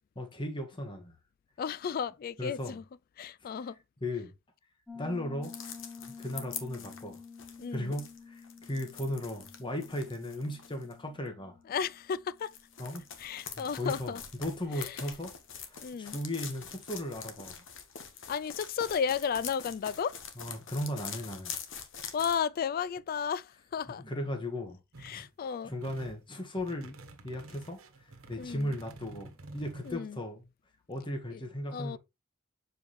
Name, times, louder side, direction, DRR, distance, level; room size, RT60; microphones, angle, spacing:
voice 1, 0.1-1.1 2.4-2.7 4.0-4.3 4.9-5.6 6.1-7.2 7.7-11.6 12.8-13.0 13.6-14.1 14.4-15.3 15.6-17.6 20.4-21.5 24.0-24.8 25.1-25.3 25.6-27.0 27.2-30.4 30.9-32.0, left 1 dB, 25° left, 1.3 m, -36 dB
voice 2, 1.6-2.8 3.2-3.8 7.6-8.0 11.7-12.5 13.2-14.2 14.7-15.0 15.8-16.2 18.3-20.2 22.1-24.0 25.0-25.7 28.4-28.8 29.8-30.2 31.3-31.4 31.7-32.0, left 7 dB, 45° left, 0.3 m, -34 dB
Piano, 4.9-13.4, left 5 dB, 5° left, 0.8 m, -50 dB
sound 1, 5.4-10.9 12.4-22.4, left 7 dB, 70° left, 1.2 m, -44 dB
sound 2, 24.9-25.2 25.6-26.2 26.6-29.9, right 2 dB, 80° right, 1.2 m, -49 dB
7.2 x 4.7 x 3.1 m
head